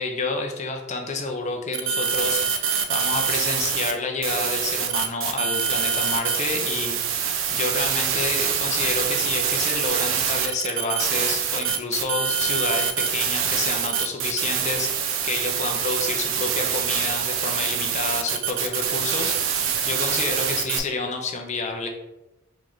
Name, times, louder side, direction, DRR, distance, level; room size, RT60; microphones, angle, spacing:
voice 1, 0.0-21.9, left 3 dB, 35° left, 3 dB, 0.5 m, -29 dB
sound 1, 1.7-3.9 4.2-20.8, right 7 dB, 75° right, 0.5 m, -25 dB
3.3 x 3.0 x 3.8 m, 1.0 s
head